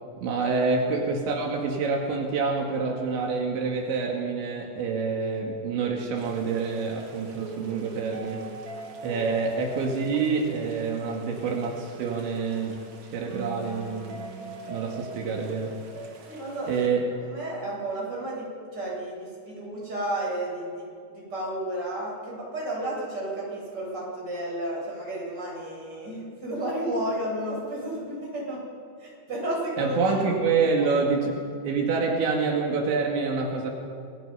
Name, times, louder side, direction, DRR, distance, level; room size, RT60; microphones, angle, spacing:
voice 1, 0.2-8.4 9.0-12.8 13.1-14.2 14.7-15.8 16.7-17.1 29.8-33.7, right 4 dB, 80° right, 0 dB, 4.3 m, -27 dB
sound 1, 6.2-16.9, right 3 dB, 45° right, 2.9 m, -42 dB
voice 2, 16.3-16.9 17.2-18.5 18.7-28.6 29.0-30.2, right 1 dB, 20° right, -4 dB, 8.5 m, -32 dB
29.0 x 21.0 x 5.6 m, 2.3 s
omnidirectional pair, 5.1 m